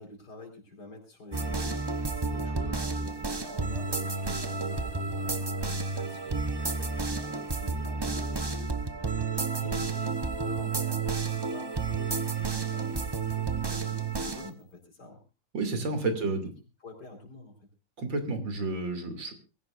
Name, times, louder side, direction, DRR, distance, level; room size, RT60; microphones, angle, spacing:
voice 1, 0.0-11.7 12.0-15.2 16.2-16.3 16.8-17.5, left 2 dB, 60° left, 3 dB, 5.1 m, -48 dB
sound 1, 1.3-14.5, right 4 dB, 30° right, 0.4 m, -31 dB
voice 2, 15.5-16.5 18.0-19.4, right 3 dB, 90° right, 6 dB, 3.4 m, -31 dB
22.5 x 16.0 x 2.6 m, 0.31 s
omnidirectional pair, 2.0 m